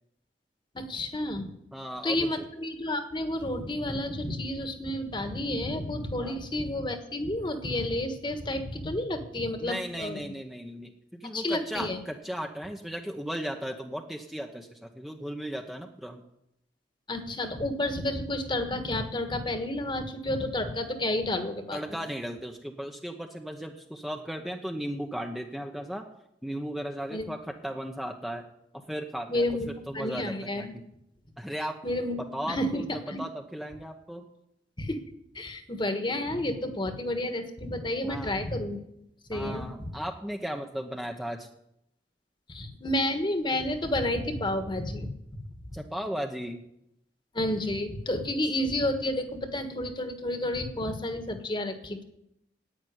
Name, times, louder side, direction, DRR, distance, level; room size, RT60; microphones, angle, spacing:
voice 1, 0.7-1.5 2.0-10.3 11.3-12.0 17.1-22.0 27.1-27.3 29.3-29.7 29.9-30.7 31.8-32.2 32.4-33.2 34.8-35.0 35.3-38.8 39.3-39.9 42.5-45.1 47.3-52.0, left 1 dB, 25° left, 8 dB, 1.4 m, -30 dB
voice 2, 1.7-2.5 6.2-6.4 9.6-16.2 21.7-26.0 26.4-28.4 28.9-29.5 29.9-30.7 31.4-31.7 32.2-34.3 38.0-38.4 39.3-41.5 45.7-46.6, equal, ahead, 2 dB, 0.8 m, -36 dB
11.0 x 9.0 x 9.5 m, 0.80 s
head